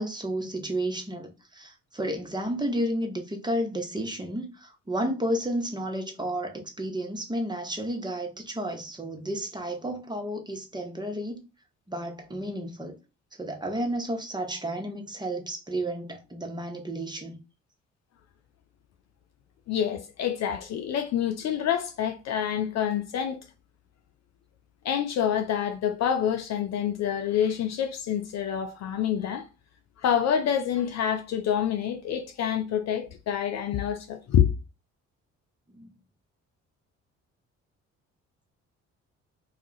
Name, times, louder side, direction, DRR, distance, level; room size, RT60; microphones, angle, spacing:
voice 1, 0.0-11.4 11.9-13.0 13.4-17.4 35.7-35.9, right 1 dB, 10° right, 0.7 m, -32 dB
voice 2, 19.7-23.4 24.8-29.5 30.0-34.5, left 9 dB, 45° left, 0.4 m, -27 dB
2.3 x 2.1 x 3.9 m
hypercardioid pair, 50°, 37 cm